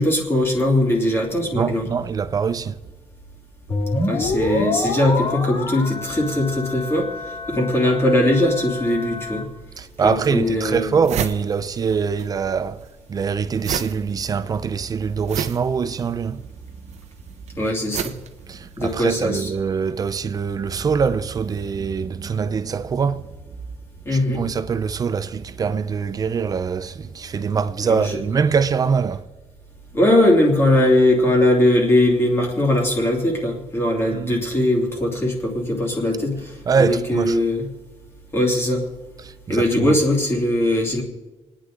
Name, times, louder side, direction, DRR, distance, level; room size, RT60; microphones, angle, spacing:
voice 1, 0.0-1.9 4.1-7.1 7.5-9.5 10.0-10.9 17.6-18.1 18.8-19.5 24.0-24.4 27.8-28.2 29.9-37.7 38.3-38.8 39.5-41.0, left 1 dB, 20° left, 2.7 m, -20 dB
voice 2, 1.5-2.8 9.8-16.4 18.5-23.3 24.1-29.3 34.1-34.4 36.7-37.4 39.2-40.0, right 6 dB, 35° right, 0.6 m, -23 dB
sound 1, 3.7-9.4, left 2 dB, 50° left, 2.1 m, -27 dB
sound 2, 9.8-9.9 10.4-10.5 10.7-12.3 12.5-19.1, right 8 dB, 75° right, 0.9 m, -31 dB
29.0 x 9.9 x 3.8 m
wide cardioid pair, 175°, 11 cm